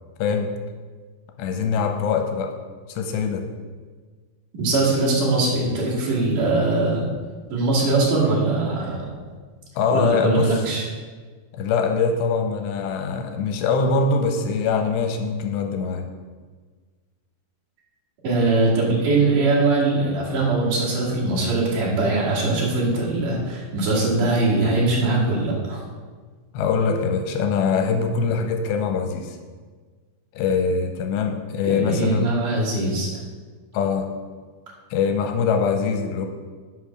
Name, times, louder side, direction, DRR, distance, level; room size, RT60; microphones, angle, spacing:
voice 1, 0.2-0.5 1.4-2.6 2.9-3.5 9.8-10.6 11.5-16.1 26.5-29.4 30.3-32.3 33.7-34.1 34.9-36.3, left 5 dB, 85° left, 5 dB, 2.9 m, -23 dB
voice 2, 4.6-7.0 7.5-9.1 9.9-10.8 18.2-25.8 31.7-33.1, right 2 dB, 50° right, -6 dB, 3.6 m, -21 dB
8.3 x 5.7 x 6.1 m, 1.5 s
omnidirectional pair, 5.0 m